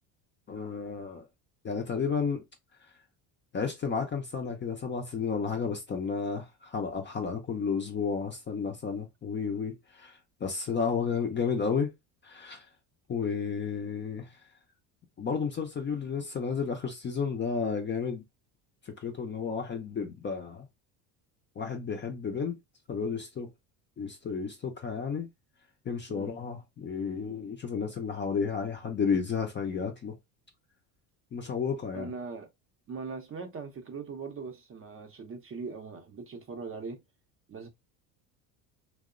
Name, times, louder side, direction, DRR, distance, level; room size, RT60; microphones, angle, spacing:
voice 1, 0.5-1.3 1.6-2.4 3.5-11.9 12.2-12.7 13.1-14.3 15.2-18.2 18.9-20.7 21.6-22.6 22.9-23.5 24.0-25.3 25.9-30.2 31.3-32.1, left 6 dB, 25° left, 0.5 m, -32 dB
voice 2, 26.1-26.4 31.9-32.5 32.9-37.0 37.5-37.7, right 5 dB, 30° right, 0.6 m, -40 dB
2.8 x 2.0 x 2.4 m
supercardioid pair, 85°, 47 cm